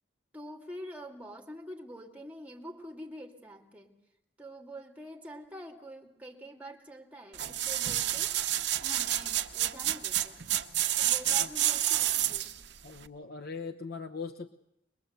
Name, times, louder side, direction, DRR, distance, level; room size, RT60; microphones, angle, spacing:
voice 1, 0.3-3.9 4.4-8.4 8.8-10.5 11.0-12.6, equal, 10° right, 2 dB, 2.6 m, -46 dB
sound 1, 7.3-12.6 13.1-13.2, right 12 dB, 70° right, 1.1 m, -29 dB
voice 2, 12.8-14.5, left 5 dB, 55° left, 6 dB, 0.9 m, -40 dB
22.5 x 22.0 x 8.0 m, 0.80 s
head